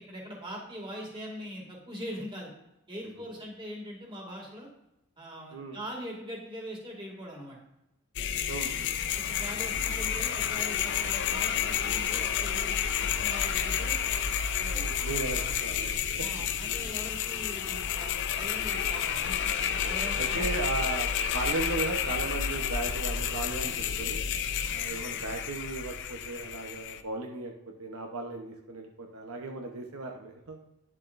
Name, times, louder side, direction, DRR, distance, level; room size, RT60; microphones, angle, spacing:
voice 1, 0.1-2.5 2.9-4.7 5.2-7.6 9.1-12.8 13.2-14.0 14.6-14.9 16.2-20.5 24.6-24.7, equal, 20° right, -1 dB, 2.2 m, -42 dB
sound 1, 8.2-27.0, left 8 dB, 55° left, 0.5 m, -30 dB
voice 2, 8.5-8.9 14.7-16.0 20.2-24.2 24.7-27.5 27.8-30.6, right 3 dB, 70° right, 2 dB, 0.9 m, -36 dB
sound 2, 16.2-16.5 16.8-16.9 18.9-19.2 19.7-19.8 20.6-20.7 21.5-21.8, equal, 85° right, 1.9 m, -48 dB
9.9 x 7.2 x 2.6 m, 0.87 s
head